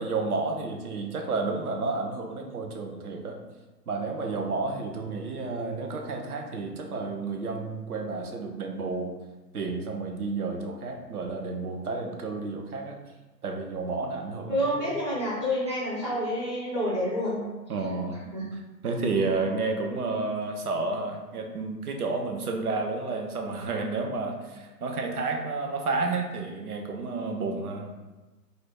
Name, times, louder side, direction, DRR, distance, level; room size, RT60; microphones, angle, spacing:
voice 1, 0.0-3.4 3.9-9.1 9.5-13.0 13.4-14.9 17.7-18.2 18.8-27.9, right 3 dB, 60° right, 3 dB, 0.6 m, -31 dB
voice 2, 14.5-17.5 18.3-18.4, equal, 20° right, -11 dB, 0.5 m, -28 dB
2.5 x 2.1 x 3.7 m, 1.1 s
figure-of-eight pair, 140°, 50 cm